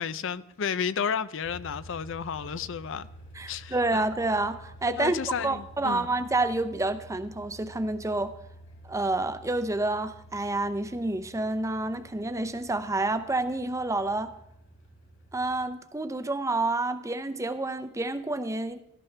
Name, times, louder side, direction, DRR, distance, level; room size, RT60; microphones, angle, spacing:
voice 1, 0.0-3.1 3.5-4.0 4.9-6.1, left 7 dB, 65° left, 15 dB, 0.5 m, -32 dB
sound 1, 1.4-15.6, right 1 dB, 85° left, 5.6 m, -50 dB
voice 2, 3.4-8.3 8.8-14.3 15.3-18.8, right 2 dB, 15° right, 11 dB, 0.6 m, -29 dB
17.0 x 13.0 x 3.3 m, 0.77 s
head